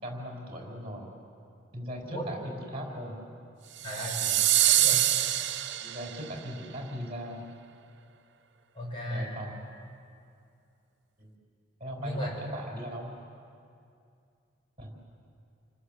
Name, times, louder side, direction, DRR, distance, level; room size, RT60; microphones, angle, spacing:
voice 1, 0.0-1.1 1.7-3.2 4.2-4.4 5.8-7.4 9.1-9.6 11.2-11.3 11.8-13.1 14.8-14.9, equal, 30° right, 1 dB, 5.2 m, -39 dB
voice 2, 2.1-2.4 3.8-4.2 4.8-5.1 8.8-9.3 12.0-12.4, equal, 25° left, -3 dB, 6.7 m, -35 dB
sound 1, 3.8-6.3, right 12 dB, 65° right, 0.8 m, -25 dB
28.5 x 19.5 x 7.6 m, 2.5 s
head